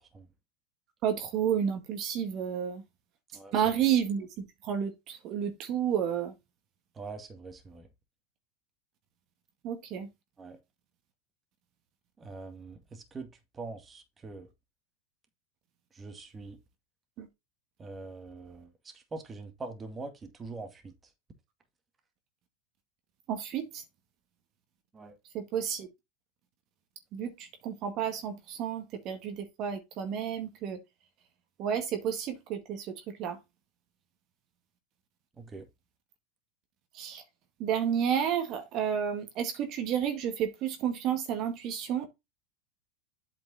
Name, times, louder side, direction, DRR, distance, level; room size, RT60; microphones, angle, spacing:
voice 1, 1.0-2.8 3.5-4.3 4.6-6.3 9.6-10.1 17.2-17.3 23.3-23.8 25.3-25.9 27.1-30.8 31.6-33.4 36.9-37.2 37.6-42.1, right 8 dB, 45° right, 1.9 m, -31 dB
voice 2, 3.3-3.7 7.0-7.9 10.4-10.6 12.2-14.5 15.9-16.6 17.8-20.9 24.9-25.2 35.4-35.7, right 3 dB, 20° right, 2.1 m, -43 dB
8.4 x 5.3 x 4.1 m
hypercardioid pair, 115°, 0 cm